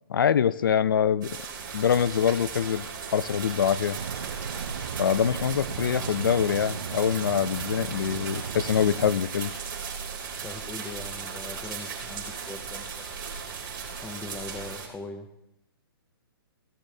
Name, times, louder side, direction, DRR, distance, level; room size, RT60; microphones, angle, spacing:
voice 1, 0.1-1.4 1.7-4.0 5.0-9.5, left 8 dB, 60° left, 18 dB, 0.5 m, -24 dB
sound 1, 1.2-14.9, right 6 dB, 50° right, 3.5 m, -37 dB
sound 2, 3.9-9.1, right 7 dB, 75° right, 0.6 m, -37 dB
voice 2, 10.4-13.1 14.0-15.3, left 3 dB, 5° left, 7 dB, 0.4 m, -41 dB
17.0 x 12.0 x 2.7 m, 0.82 s
hypercardioid pair, 170°, 13 cm